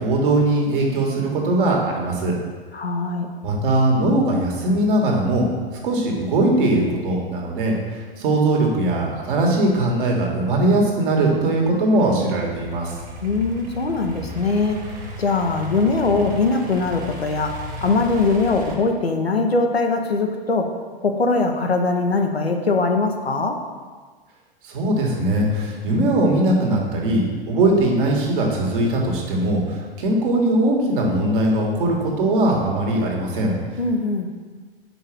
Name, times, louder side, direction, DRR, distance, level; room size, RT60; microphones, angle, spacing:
voice 1, 0.0-2.4 3.4-5.5 5.8-13.0 24.6-33.5, right 1 dB, 60° right, -1 dB, 1.8 m, -20 dB
voice 2, 2.7-3.3 13.2-14.8 15.2-17.6 17.8-20.7 21.0-23.6 33.8-34.3, left 3 dB, 90° left, 4 dB, 0.8 m, -21 dB
Idling / Accelerating revving vroom, 11.6-18.7, equal, 25° right, 1.4 m, -36 dB
5.2 x 4.9 x 6.2 m, 1.5 s
figure-of-eight pair, 100°, 30 cm